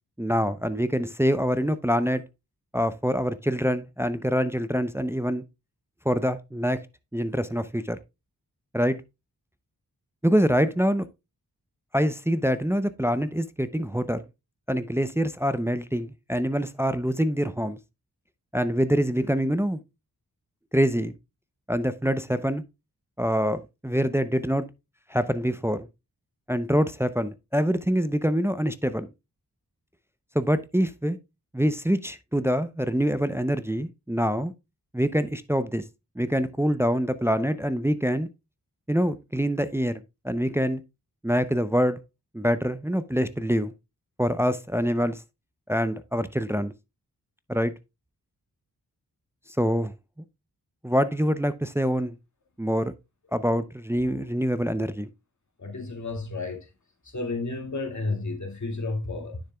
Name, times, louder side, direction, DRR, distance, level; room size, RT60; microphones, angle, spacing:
voice 1, 0.2-2.2 2.7-5.4 6.0-6.8 7.1-8.0 8.7-9.0 10.2-11.0 11.9-14.2 14.7-17.8 18.5-19.8 20.7-21.1 21.7-22.6 23.2-24.7 25.1-25.9 26.5-29.1 30.3-31.2 31.5-34.5 34.9-35.8 36.2-38.3 38.9-40.8 41.2-42.0 42.3-43.7 44.2-45.2 45.7-46.7 47.5-47.7 49.6-49.9 50.8-52.1 52.6-52.9 53.3-55.1, equal, 5° right, 0.6 m, -25 dB
voice 2, 55.6-56.7 57.1-59.5, left 3 dB, 50° left, 2.2 m, -32 dB
9.8 x 6.6 x 2.2 m
cardioid pair, 60°, 37 cm